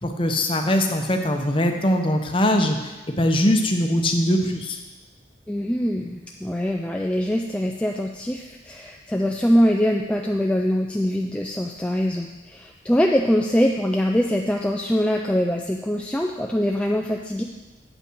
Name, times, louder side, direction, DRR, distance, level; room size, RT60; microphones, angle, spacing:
voice 1, 0.0-4.8, left 1 dB, 25° left, 4 dB, 0.8 m, -21 dB
voice 2, 5.5-17.4, equal, 5° left, 1 dB, 0.3 m, -23 dB
8.5 x 5.6 x 6.2 m, 1.2 s
head